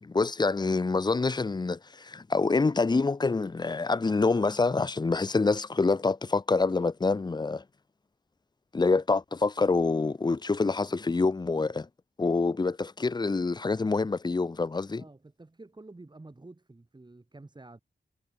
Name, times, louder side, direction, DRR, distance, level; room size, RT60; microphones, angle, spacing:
voice 1, 0.0-7.6 8.7-11.9 12.2-15.0, left 3 dB, 25° left, 0.6 m, -26 dB
voice 2, 15.0-17.8, right 2 dB, 25° right, 6.5 m, -49 dB
wide cardioid pair, 130°, 18 cm